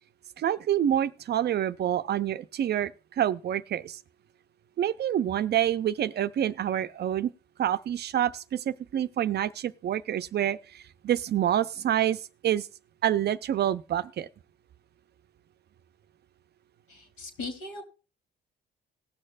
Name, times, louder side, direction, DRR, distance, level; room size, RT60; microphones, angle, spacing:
voice 1, 0.4-4.0 4.8-7.3 7.6-12.7 13.0-14.3, right 11 dB, 55° right, 0.5 m, -27 dB
voice 2, 16.9-17.8, left 3 dB, 75° left, 2.7 m, -38 dB
19.5 x 6.5 x 2.5 m
cardioid pair, 90°, 20 cm